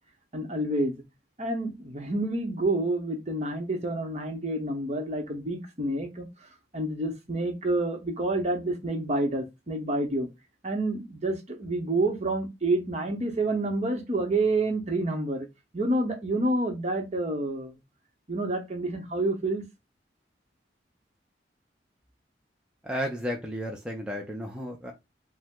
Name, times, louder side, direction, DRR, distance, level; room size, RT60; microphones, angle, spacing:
voice 1, 0.3-1.0 1.4-6.3 6.7-10.3 10.6-15.5 15.7-17.7 18.3-19.7, right 2 dB, 40° right, 1.0 m, -28 dB
voice 2, 22.8-24.9, equal, 5° right, 0.6 m, -33 dB
5.2 x 2.2 x 3.7 m
head